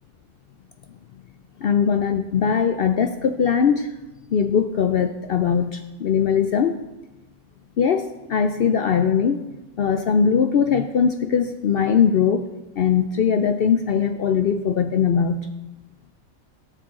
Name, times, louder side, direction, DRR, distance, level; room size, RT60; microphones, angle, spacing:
voice 1, 1.6-3.9 4.3-6.8 7.8-9.5 9.8-12.5 12.8-15.5, left 7 dB, 65° left, 8 dB, 0.6 m, -20 dB
16.5 x 6.7 x 3.7 m, 1.1 s
omnidirectional pair, 1.4 m